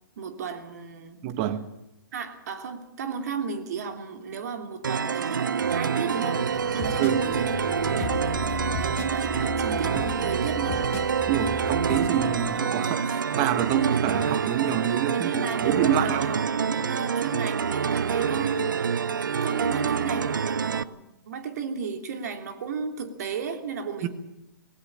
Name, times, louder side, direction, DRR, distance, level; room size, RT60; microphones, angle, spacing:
voice 1, 0.2-1.2 2.1-7.5 7.8-10.8 15.1-18.6 19.4-24.1, right 5 dB, 50° right, 3.0 m, -34 dB
voice 2, 1.2-1.6 7.0-7.2 11.3-15.3 15.6-16.3 24.0-24.1, right 10 dB, 30° right, 1.6 m, -26 dB
sound 1, 4.8-20.8, right 6 dB, 70° right, 0.8 m, -27 dB
sound 2, 6.3-12.6, left 4 dB, 20° left, 2.4 m, -36 dB
19.0 x 18.5 x 8.8 m
figure-of-eight pair, 130°, 11 cm